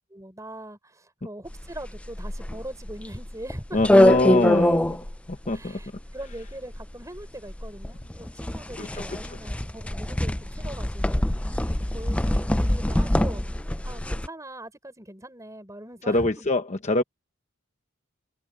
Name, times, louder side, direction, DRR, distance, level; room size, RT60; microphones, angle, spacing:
voice 1, 0.1-4.1 5.5-11.3 11.7-13.5 13.8-16.5, right 1 dB, 15° right, 5.7 m, -41 dB
sound 1, 1.5-14.3, left 1 dB, 5° left, 0.4 m, -24 dB
voice 2, 3.7-5.0 5.3-5.8 8.8-9.0 16.1-17.0, left 2 dB, 30° left, 0.9 m, -24 dB
head